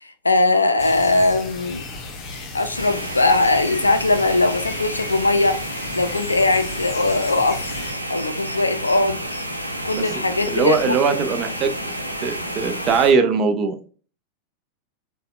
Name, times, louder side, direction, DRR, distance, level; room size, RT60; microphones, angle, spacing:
voice 1, 0.0-1.8 2.5-5.6 5.9-7.6 8.1-9.2 9.8-11.2, left 2 dB, 80° left, 0.4 m, -20 dB
sound 1, 0.8-7.9, left 3 dB, 35° left, 0.7 m, -36 dB
sound 2, 2.7-13.1, equal, 90° right, 0.4 m, -30 dB
voice 2, 10.5-11.8 12.2-13.8, right 5 dB, 30° right, 0.5 m, -20 dB
4.0 x 2.1 x 2.4 m
figure-of-eight pair, 90°, 0 cm